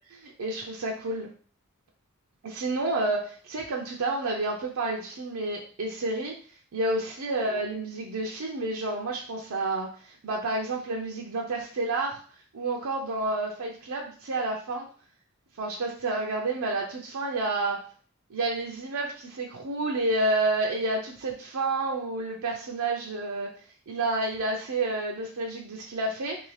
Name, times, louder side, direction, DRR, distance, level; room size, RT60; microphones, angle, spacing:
voice 1, 0.2-1.3 2.4-6.3 6.7-12.2 12.5-14.9 15.6-17.8 18.3-23.5 23.9-26.4, right 2 dB, 90° right, -1 dB, 0.5 m, -30 dB
2.7 x 2.7 x 3.2 m, 0.42 s
head